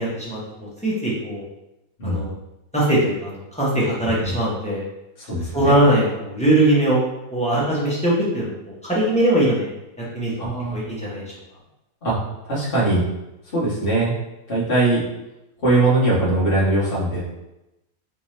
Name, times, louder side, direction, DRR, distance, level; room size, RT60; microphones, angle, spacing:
voice 1, 0.0-1.4 2.0-2.3 2.7-4.8 5.5-7.0 7.3-8.5 8.8-9.7 10.1-11.2, right 1 dB, 10° left, -7 dB, 0.3 m, -21 dB
voice 2, 5.2-5.9 10.4-10.8 12.0-12.2 12.4-13.0 13.5-14.1 14.5-15.0 15.6-17.3, right 2 dB, 40° left, -7 dB, 1.2 m, -21 dB
3.4 x 2.8 x 3.1 m, 0.94 s
omnidirectional pair, 1.7 m